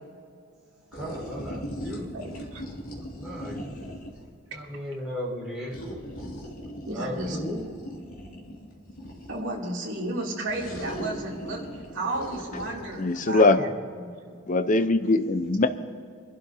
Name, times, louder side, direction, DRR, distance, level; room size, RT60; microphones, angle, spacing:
sound 1, 0.9-4.3 5.7-9.5 10.5-13.4, equal, 85° left, 2.4 m, -39 dB
voice 1, 0.9-2.4 2.7-3.7 4.5-5.8 6.9-7.7 13.6-13.7, equal, 5° right, -6 dB, 4.4 m, -36 dB
voice 2, 1.9-2.2 2.5-2.6 4.7-4.8 6.9-7.7 9.3-11.6 11.9-14.3, right 2 dB, 60° right, -4 dB, 2.8 m, -33 dB
voice 3, 13.0-13.6 14.5-15.7, left 2 dB, 35° left, 10 dB, 0.6 m, -21 dB
26.5 x 11.5 x 2.8 m, 2.2 s
head